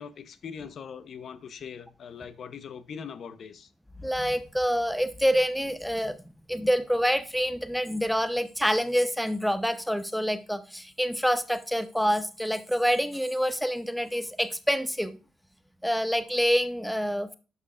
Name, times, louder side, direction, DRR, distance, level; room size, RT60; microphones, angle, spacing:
voice 1, 0.0-3.7, left 7 dB, 55° left, 0.7 m, -41 dB
voice 2, 4.0-6.2 6.5-15.2 15.8-17.4, equal, ahead, 0.6 m, -27 dB
11.0 x 5.5 x 2.4 m
cardioid pair, 90°, 0 cm